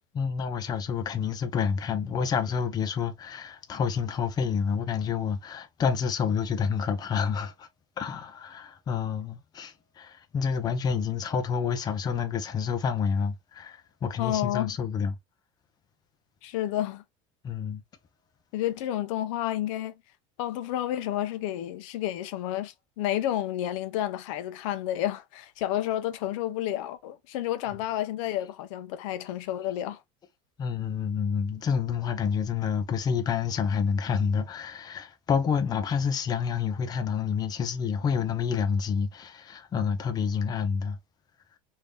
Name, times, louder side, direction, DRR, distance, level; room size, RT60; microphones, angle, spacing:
voice 1, 0.1-7.7 8.0-15.1 17.4-17.8 30.6-41.0, left 6 dB, 25° left, 0.6 m, -28 dB
voice 2, 14.2-14.7 16.4-17.0 18.5-19.9 20.4-30.0, left 12 dB, 85° left, 0.6 m, -30 dB
3.3 x 2.7 x 3.2 m
cardioid pair, 145°, 16 cm